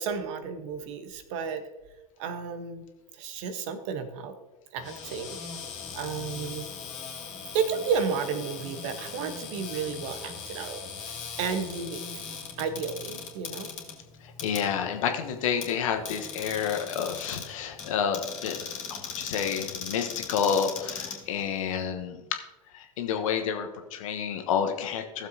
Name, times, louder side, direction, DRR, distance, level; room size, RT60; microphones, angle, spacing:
voice 1, 0.0-1.6 2.2-2.8 3.2-4.3 4.7-5.4 5.9-6.7 7.5-10.8 11.4-12.2 12.6-13.7, right 6 dB, 55° right, 9 dB, 1.1 m, -32 dB
Cupboard open or close, 4.8-21.8, left 6 dB, 40° left, 2.7 m, -39 dB
voice 2, 14.4-22.2 22.7-25.3, left 7 dB, 60° left, 6 dB, 1.2 m, -29 dB
15.5 x 7.2 x 2.8 m, 1.1 s
figure-of-eight pair, 80°, 19 cm